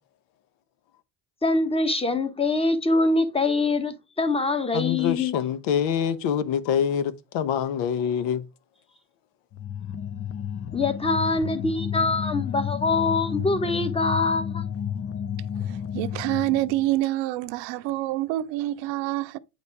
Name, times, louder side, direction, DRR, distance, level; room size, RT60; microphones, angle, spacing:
voice 1, 1.4-5.3 10.7-14.6, left 3 dB, 10° left, 1.3 m, -24 dB
voice 2, 4.7-8.4, left 8 dB, 65° left, 1.1 m, -25 dB
sound 1, 9.5-16.9, left 8 dB, 30° left, 0.6 m, -31 dB
voice 3, 15.6-19.4, right 16 dB, 65° right, 0.7 m, -27 dB
8.7 x 4.1 x 3.5 m
supercardioid pair, 90°, 47 cm